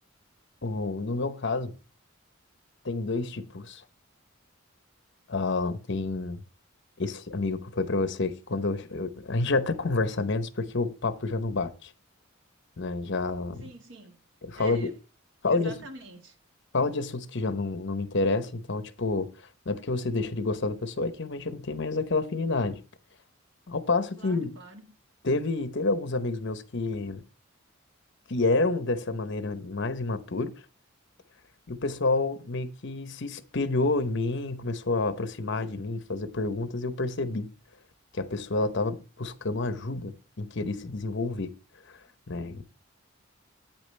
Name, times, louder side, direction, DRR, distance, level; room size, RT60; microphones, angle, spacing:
voice 1, 0.6-1.7 2.8-3.8 5.3-6.4 7.0-11.9 12.8-13.7 14.4-14.9 15.4-15.8 16.7-19.3 19.7-22.8 23.7-24.5 25.2-27.2 28.3-30.5 31.7-37.5 38.1-41.5 42.3-42.6, left 3 dB, 60° left, 0.9 m, -29 dB
voice 2, 13.6-14.2 14.5-14.9 15.4-16.3 24.2-24.9, right 3 dB, 60° right, 1.6 m, -45 dB
8.8 x 8.8 x 3.3 m
head